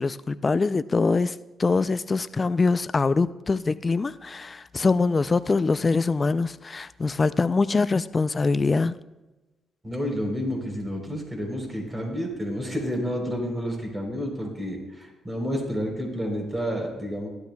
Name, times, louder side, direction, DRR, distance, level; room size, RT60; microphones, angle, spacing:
voice 1, 0.0-9.0, left 4 dB, 30° left, 15 dB, 0.3 m, -23 dB
voice 2, 9.8-17.3, equal, 20° right, 1 dB, 3.7 m, -30 dB
15.0 x 12.0 x 2.3 m, 1.1 s
cardioid pair, 90°, 0 cm